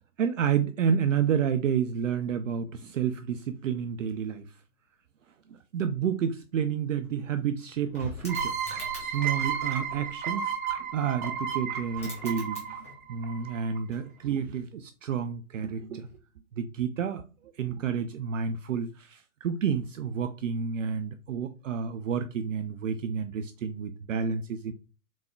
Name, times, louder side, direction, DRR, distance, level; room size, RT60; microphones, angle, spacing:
voice 1, 0.2-4.5 5.5-8.5 9.0-10.6 10.9-12.6 13.1-16.1 16.5-17.2 17.6-24.7, right 7 dB, 60° right, 0.5 m, -30 dB
sound 1, 6.5-6.6 6.8-9.4 11.4-11.5 11.8-13.1 13.4-14.6 16.0-16.2, left 1 dB, 10° left, 0.4 m, -45 dB
sound 2, 8.3-13.8, right 7 dB, 35° right, 1.1 m, -33 dB
4.0 x 3.6 x 2.2 m
hypercardioid pair, 140°, 43 cm